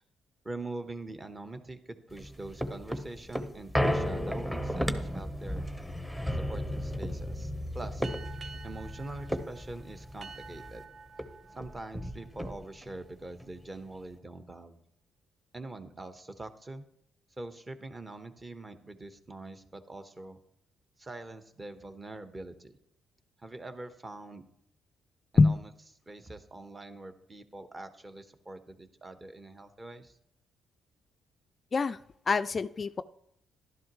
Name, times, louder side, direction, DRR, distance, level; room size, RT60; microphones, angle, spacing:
voice 1, 0.4-5.7 6.3-8.1 8.6-10.8 11.6-14.8 15.5-16.8 17.4-20.4 21.0-22.7 23.4-24.4 25.3-25.7 26.1-30.2, right 2 dB, 25° right, 9 dB, 1.2 m, -44 dB
sound 1, 2.1-10.8 11.2-11.3 11.5-12.9 13.4-13.5, equal, 5° right, 0.9 m, -34 dB
sound 2, 8.0-13.1, right 5 dB, 40° right, 0.6 m, -50 dB
voice 2, 32.3-33.0, left 4 dB, 35° left, 12 dB, 0.3 m, -24 dB
12.0 x 11.0 x 3.1 m, 0.74 s
cardioid pair, 90°, 0 cm